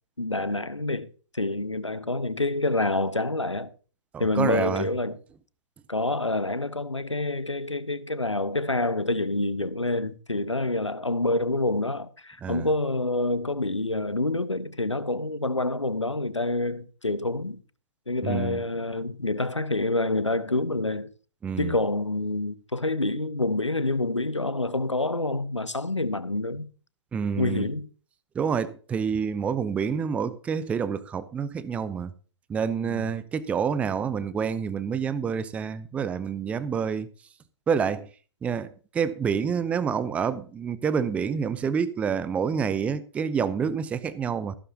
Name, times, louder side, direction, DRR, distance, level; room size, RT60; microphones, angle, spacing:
voice 1, 0.2-3.7 4.2-5.2 5.9-17.6 18.1-21.1 21.6-26.7 27.4-27.9 32.8-33.1, left 2 dB, 85° left, 1.2 m, -27 dB
voice 2, 4.1-4.9 12.4-12.7 18.2-18.6 21.4-21.7 27.1-27.7 28.3-32.1 32.5-37.1 37.7-38.1 38.4-38.7 38.9-44.6, right 6 dB, 10° right, 0.7 m, -28 dB
15.0 x 12.5 x 2.9 m
figure-of-eight pair, 125°, 15 cm